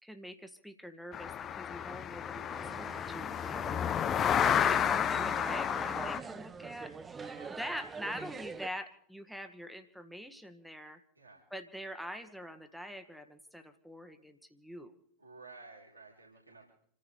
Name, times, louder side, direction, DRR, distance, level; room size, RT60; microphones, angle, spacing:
voice 1, 0.0-11.0 11.5-14.9, equal, ahead, 8 dB, 1.7 m, -45 dB
sound 1, 1.1-6.2, left 9 dB, 25° left, 0.7 m, -31 dB
sound 2, 2.5-8.7, right 5 dB, 15° right, 1.0 m, -44 dB
voice 2, 4.2-4.8 7.2-7.6 11.1-11.4 15.2-16.7, right 3 dB, 85° right, -3 dB, 4.2 m, -52 dB
28.5 x 14.5 x 3.5 m, 0.63 s
figure-of-eight pair, 90°, 0 cm